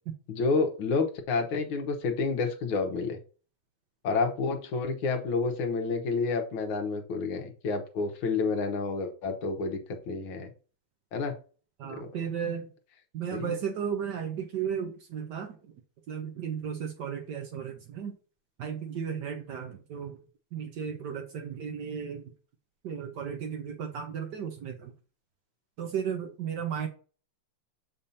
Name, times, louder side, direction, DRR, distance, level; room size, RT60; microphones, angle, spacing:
voice 1, 0.3-3.2 4.0-10.5 11.1-11.4 11.9-12.1 13.3-13.6, left 4 dB, 70° left, 1.7 m, -29 dB
voice 2, 11.8-12.7 13.1-15.7 16.1-18.2 18.6-20.2 20.5-22.3 22.8-24.9 25.8-26.9, right 7 dB, 65° right, 1.2 m, -34 dB
6.9 x 5.3 x 2.7 m
omnidirectional pair, 2.4 m